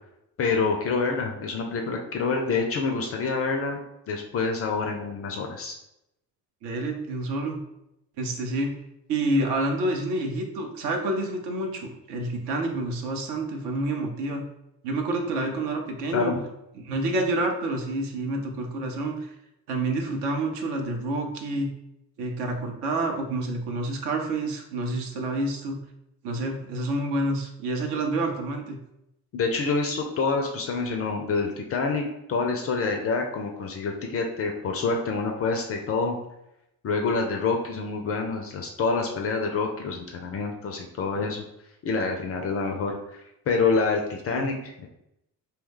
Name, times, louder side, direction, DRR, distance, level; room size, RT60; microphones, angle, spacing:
voice 1, 0.4-3.8 4.1-5.8 16.1-16.4 29.3-36.2 36.8-41.4 41.8-44.9, left 4 dB, 30° left, 3 dB, 0.4 m, -27 dB
voice 2, 6.6-7.6 8.2-8.7 9.1-14.5 14.8-16.4 16.8-19.3 19.7-21.7 22.2-25.8 26.2-28.8 44.3-44.5, right 2 dB, 55° right, 3 dB, 0.7 m, -28 dB
2.7 x 2.1 x 3.6 m, 0.83 s
figure-of-eight pair, 40°, 49 cm